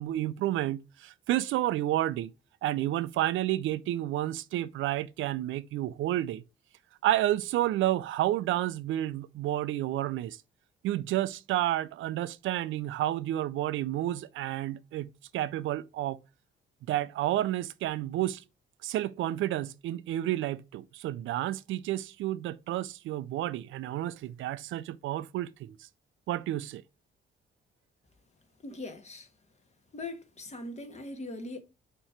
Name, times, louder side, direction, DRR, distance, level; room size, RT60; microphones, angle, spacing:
voice 1, 0.0-2.3 2.6-6.4 7.0-10.4 10.8-16.2 16.9-18.4 18.8-25.8 26.3-26.8, right 14 dB, 80° right, 0.5 m, -30 dB
voice 2, 28.6-29.3 29.9-31.6, left 2 dB, 35° left, 1.5 m, -40 dB
6.6 x 3.0 x 5.7 m
cardioid pair, 90°, 20 cm